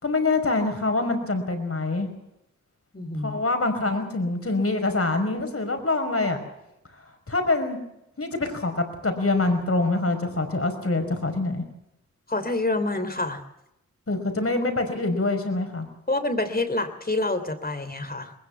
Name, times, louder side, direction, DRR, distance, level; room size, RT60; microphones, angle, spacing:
voice 1, 0.0-2.1 3.2-6.4 7.3-7.8 8.2-11.6 14.1-15.9, left 2 dB, 50° left, 6 dB, 5.4 m, -25 dB
voice 2, 2.9-3.4 12.3-13.4 16.1-18.3, left 2 dB, 30° left, 9 dB, 3.2 m, -27 dB
21.0 x 20.5 x 7.3 m, 0.84 s
wide cardioid pair, 60°, 30 cm